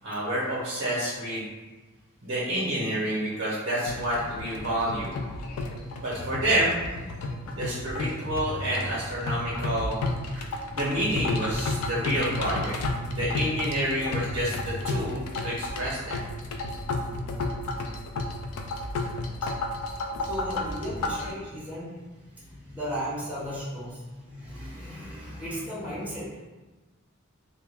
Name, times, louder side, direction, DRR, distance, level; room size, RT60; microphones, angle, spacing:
voice 1, 0.0-1.5 2.2-5.1 6.0-6.7 7.5-10.0 10.7-12.7 13.1-16.2, right 1 dB, 70° right, -8 dB, 0.7 m, -28 dB
sound 1, 3.8-21.3, left 2 dB, 85° left, 0.3 m, -32 dB
voice 2, 20.2-21.9 22.4-26.3, equal, 5° right, -8 dB, 0.7 m, -36 dB
2.2 x 2.1 x 3.2 m, 1.2 s
head